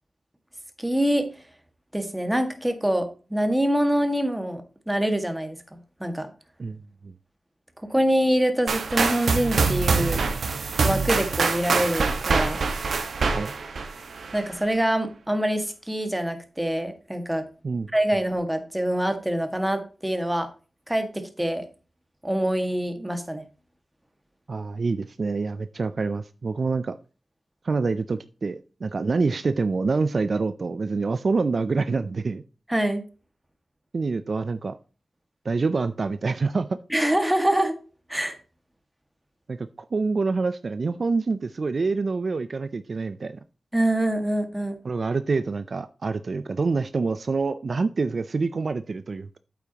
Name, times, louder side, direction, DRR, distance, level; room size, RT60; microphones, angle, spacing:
voice 1, 0.8-1.3 1.9-5.6 6.0-6.3 7.8-10.3 10.8-12.6 14.3-17.4 17.9-20.5 20.9-21.6 22.2-23.4 32.7-33.0 36.9-37.8 38.1-38.4 43.7-44.8, right 1 dB, 10° right, 7 dB, 1.8 m, -25 dB
voice 2, 6.6-7.1 13.3-13.5 17.6-17.9 24.5-27.0 27.6-32.4 33.9-34.8 35.4-36.8 39.5-43.4 44.8-49.4, right 4 dB, 50° right, 12 dB, 0.4 m, -26 dB
sound 1, 8.7-14.5, right 4 dB, 75° right, 1.4 m, -25 dB
8.4 x 8.4 x 2.9 m, 0.35 s
wide cardioid pair, 90°, 0 cm